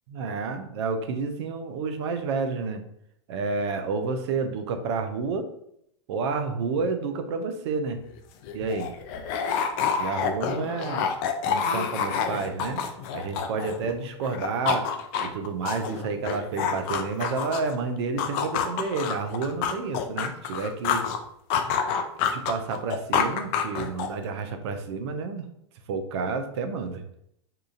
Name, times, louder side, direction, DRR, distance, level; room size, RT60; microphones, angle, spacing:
voice 1, 0.1-2.8 3.3-5.5 6.1-8.0 8.5-8.9 10.0-11.1 11.5-12.8 13.1-14.9 15.2-21.1 21.6-21.7 22.3-25.5 25.9-27.0, right 4 dB, 65° right, 7 dB, 0.5 m, -30 dB
sound 1, 8.1-8.2 8.4-14.0 14.2-17.8 18.2-21.2 21.5-24.3, left 7 dB, 50° left, 0.4 m, -28 dB
2.8 x 2.4 x 2.4 m, 0.73 s
hypercardioid pair, 100°, 16 cm